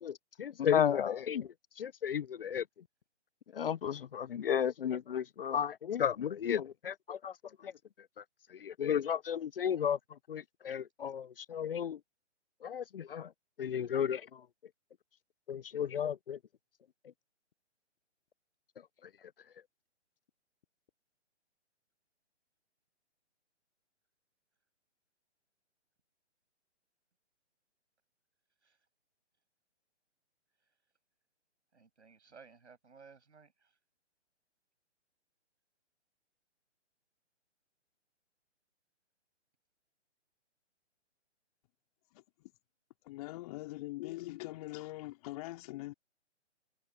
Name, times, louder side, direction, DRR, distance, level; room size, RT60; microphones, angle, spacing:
voice 1, 0.0-2.6 3.5-7.4 7.6-7.7 8.2-8.3 8.5-12.0 12.6-13.3 13.6-14.4 15.5-16.4, left 8 dB, 50° left, 0.9 m, -33 dB
voice 2, 31.7-33.7, right 5 dB, 75° right, 7.5 m, -58 dB
voice 3, 42.1-42.5 43.0-45.9, left 18 dB, 30° left, 3.4 m, -43 dB
figure-of-eight pair, 135°, 35 cm